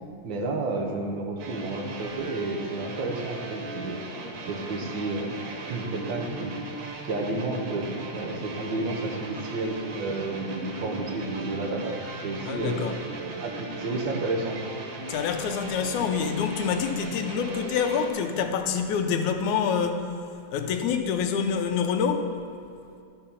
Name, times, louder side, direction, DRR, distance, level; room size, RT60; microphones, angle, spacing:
voice 1, 0.2-4.0 4.5-5.3 5.6-6.5 7.0-12.0 12.2-12.9 13.2-14.6, right 2 dB, 60° right, 1 dB, 1.3 m, -31 dB
sound 1, 1.4-18.1, right 2 dB, 90° right, 2.8 m, -38 dB
voice 2, 12.4-13.0 15.1-20.1 20.5-22.3, left 6 dB, 80° left, 6 dB, 2.0 m, -26 dB
11.5 x 5.6 x 7.0 m, 2.5 s
omnidirectional pair, 3.5 m